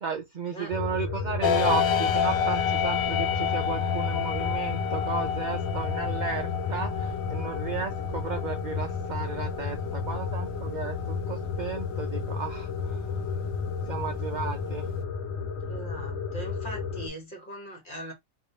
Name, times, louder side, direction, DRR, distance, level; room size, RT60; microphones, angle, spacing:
voice 1, 0.0-13.0 13.9-14.9, right 6 dB, 70° right, 0.4 m, -34 dB
sound 1, 0.7-17.1, left 5 dB, 60° left, 1.0 m, -32 dB
sound 2, 1.4-15.0, left 7 dB, 85° left, 1.0 m, -31 dB
voice 2, 15.6-18.1, right 1 dB, 40° left, 1.4 m, -40 dB
3.3 x 2.9 x 2.8 m
omnidirectional pair, 1.4 m